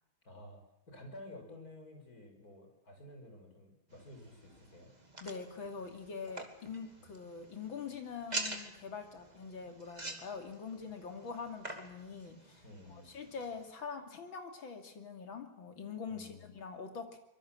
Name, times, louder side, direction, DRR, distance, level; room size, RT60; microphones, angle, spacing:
voice 1, 0.2-4.9 12.6-13.2 16.1-16.5, left 1 dB, 45° left, 4 dB, 6.0 m, -52 dB
sound 1, 3.9-13.7, right 2 dB, 20° right, 2.7 m, -47 dB
voice 2, 5.2-12.6 12.9-17.2, left 5 dB, 75° left, 6 dB, 3.5 m, -44 dB
24.5 x 22.5 x 7.6 m, 0.84 s
omnidirectional pair, 2.2 m